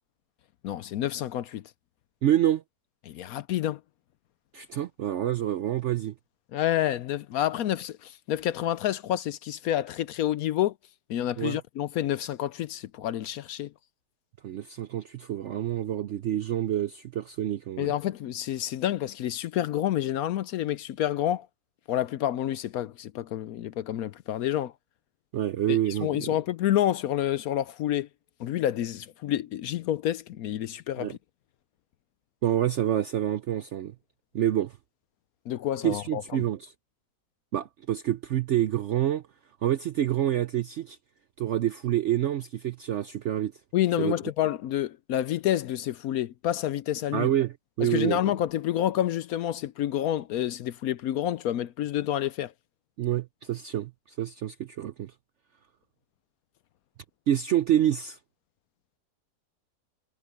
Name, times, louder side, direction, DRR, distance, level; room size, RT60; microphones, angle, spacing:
voice 1, 0.6-1.6 3.1-3.8 6.5-10.7 11.1-13.7 17.8-21.5 21.9-24.7 25.7-28.1 28.4-31.2 35.5-36.2 43.7-47.3 47.8-52.5, left 12 dB, 70° left, 0.9 m, -28 dB
voice 2, 2.2-2.6 4.5-6.1 11.4-11.6 14.4-17.9 25.3-26.3 31.0-31.2 32.4-33.9 34.3-34.8 35.8-36.7 37.5-39.2 39.6-41.0 41.4-43.5 44.0-44.1 47.1-48.3 53.0-55.1 57.3-58.2, right 11 dB, 70° right, 0.7 m, -27 dB
omnidirectional pair, 1.8 m